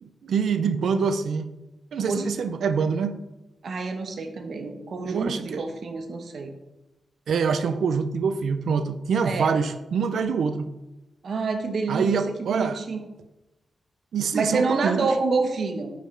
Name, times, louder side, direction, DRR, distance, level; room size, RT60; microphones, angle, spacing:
voice 1, 0.0-1.5 1.9-3.1 5.0-5.6 7.3-10.7 11.9-12.8 14.1-15.1, right 5 dB, 75° right, 10 dB, 0.6 m, -25 dB
voice 2, 3.6-6.5 9.2-9.5 11.2-13.1 14.3-15.9, right 4 dB, 55° right, 5 dB, 1.1 m, -27 dB
10.0 x 5.2 x 3.8 m, 1.0 s
wide cardioid pair, 150°, 0 cm